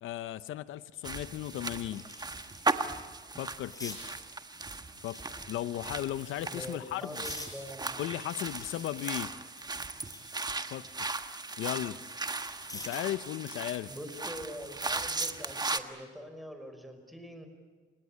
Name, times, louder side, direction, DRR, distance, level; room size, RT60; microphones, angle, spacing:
voice 1, 0.0-2.0 3.4-4.0 5.0-5.2 5.5-7.2 8.0-9.3 10.7-11.1 11.6-12.0 12.7-13.9, left 13 dB, 80° left, 15 dB, 0.7 m, -36 dB
sound 1, 0.7-0.8 1.3-2.7 3.1-4.0 5.0-5.8 6.4-7.5 8.1-10.3 10.7-13.2 14.5-14.8, left 2 dB, 15° left, 7.4 m, -48 dB
sound 2, 1.0-15.8, right 3 dB, 20° right, 1.4 m, -37 dB
voice 2, 6.4-8.0 13.9-17.5, equal, ahead, 7 dB, 5.3 m, -44 dB
29.5 x 18.0 x 10.0 m, 1.5 s
cardioid pair, 90°, 20 cm